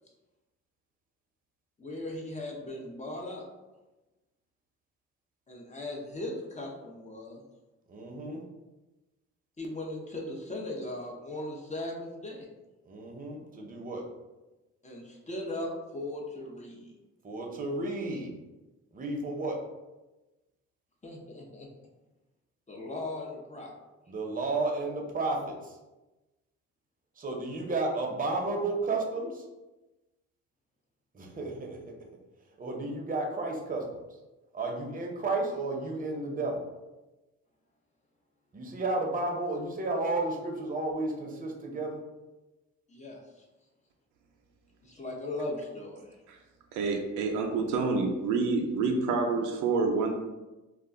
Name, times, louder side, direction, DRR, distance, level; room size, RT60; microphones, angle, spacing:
voice 1, 1.8-3.4 5.5-7.4 9.6-12.5 14.8-16.9 21.0-21.7 22.7-23.7 42.9-43.2 44.8-46.1, left 1 dB, 25° left, -1 dB, 0.6 m, -38 dB
voice 2, 7.9-8.4 12.9-14.0 17.2-18.3 18.9-19.6 24.1-25.8 27.2-29.4 31.1-31.9 32.6-33.8 34.5-36.7 38.5-42.0, right 2 dB, 30° right, 1 dB, 0.6 m, -32 dB
voice 3, 46.7-50.2, right 4 dB, 90° right, 2 dB, 0.4 m, -28 dB
2.3 x 2.1 x 3.6 m, 1.1 s
cardioid pair, 90°, 30 cm